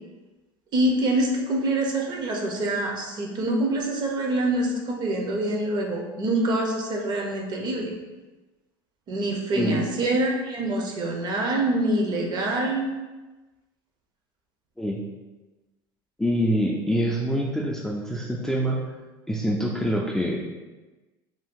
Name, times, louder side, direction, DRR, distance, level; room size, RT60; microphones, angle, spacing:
voice 1, 0.7-7.9 9.1-12.9, right 1 dB, 40° right, 1 dB, 0.6 m, -25 dB
voice 2, 9.5-9.8 14.8-15.0 16.2-18.8 19.3-20.5, equal, 5° left, -2 dB, 0.3 m, -25 dB
2.7 x 2.2 x 3.6 m, 1.2 s
supercardioid pair, 110°, 11 cm